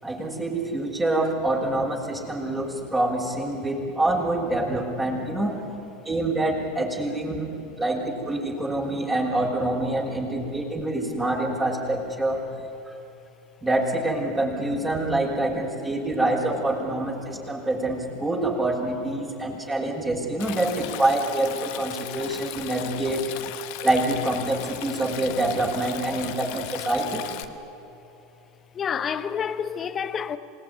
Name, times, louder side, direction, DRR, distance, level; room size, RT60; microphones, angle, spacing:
voice 1, 0.0-5.6 6.0-12.5 13.6-23.2 23.8-27.2, right 2 dB, 15° right, 6.4 m, -26 dB
voice 2, 19.2-19.6 22.3-22.4 24.9-25.0 28.7-30.4, left 7 dB, 30° left, 1.4 m, -31 dB
Stream, 20.4-27.4, left 14 dB, 60° left, 1.5 m, -37 dB
27.5 x 19.0 x 9.8 m
hypercardioid pair, 80°, 0 cm